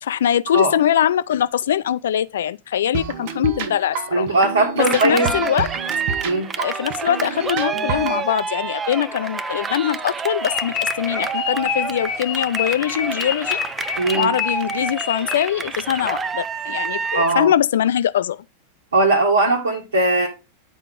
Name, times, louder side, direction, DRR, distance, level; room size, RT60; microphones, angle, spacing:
voice 1, 0.0-4.3 4.8-5.7 6.6-13.6 14.1-18.4, left 10 dB, 60° left, 0.4 m, -22 dB
sound 1, 2.9-8.2, right 6 dB, 50° right, 0.8 m, -29 dB
voice 2, 4.1-5.3 6.2-6.5 14.0-14.3 17.1-17.5 18.9-20.3, right 2 dB, 75° right, 1.8 m, -19 dB
Cheering, 4.8-17.4, right 5 dB, 20° right, 0.5 m, -28 dB
sound 2, 10.4-15.7, left 10 dB, 40° left, 0.8 m, -27 dB
9.2 x 4.5 x 3.7 m
figure-of-eight pair, 90°, 0 cm